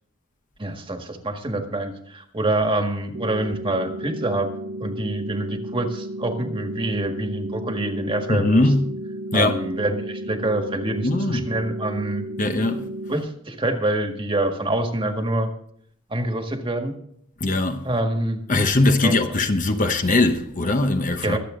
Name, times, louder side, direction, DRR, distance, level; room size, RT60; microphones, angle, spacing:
voice 1, 0.6-4.5 4.8-8.7 9.3-12.2 13.1-15.5 16.1-16.9 17.8-18.4 19.0-19.4 21.2-21.4, right 1 dB, 25° right, 1.7 m, -26 dB
sound 1, 3.1-13.2, right 1 dB, 50° right, 1.2 m, -33 dB
voice 2, 8.3-8.9 9.3-9.6 11.0-11.5 12.4-12.8 17.4-17.9 18.5-21.4, left 2 dB, 40° left, 1.0 m, -20 dB
23.5 x 8.3 x 3.8 m
head